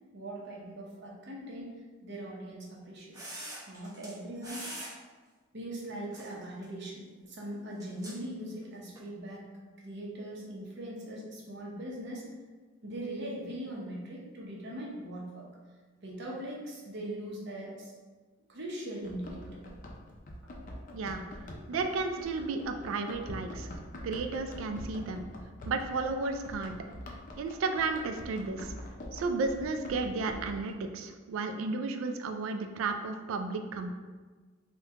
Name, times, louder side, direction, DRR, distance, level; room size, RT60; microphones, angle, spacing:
voice 1, 0.1-1.7 2.0-3.2 3.7-4.6 5.5-9.4 9.8-12.2 12.8-15.5 16.0-17.9 18.5-19.6, right 1 dB, 60° right, -3 dB, 0.8 m, -40 dB
sound 1, 3.1-4.1 4.4-4.9 6.1-6.6 7.8-8.2 9.0-9.1, right 1 dB, 15° right, 0.7 m, -43 dB
Run, 19.0-30.7, left 1 dB, 40° left, 0.4 m, -44 dB
voice 2, 20.9-21.2 21.7-23.7 24.0-25.2 25.7-26.8 27.4-28.7 29.1-33.9, right 3 dB, 85° right, 6 dB, 0.3 m, -33 dB
3.5 x 2.2 x 2.8 m, 1.4 s
head